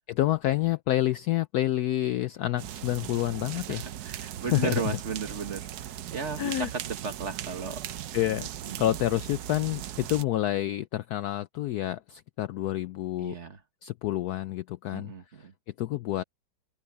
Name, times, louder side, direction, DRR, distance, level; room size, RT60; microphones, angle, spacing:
voice 1, 0.1-3.8 4.4-4.8 6.4-6.7 8.1-8.5 8.8-13.4 13.8-15.1 15.8-16.2, left 14 dB, 85° left, 0.8 m, -28 dB
sound 1, 2.6-10.2, right 11 dB, 65° right, 1.1 m, -38 dB
voice 2, 3.5-7.8 8.6-8.9 13.2-13.6 14.9-15.5, right 5 dB, 40° right, 1.5 m, -35 dB
open air
omnidirectional pair, 2.2 m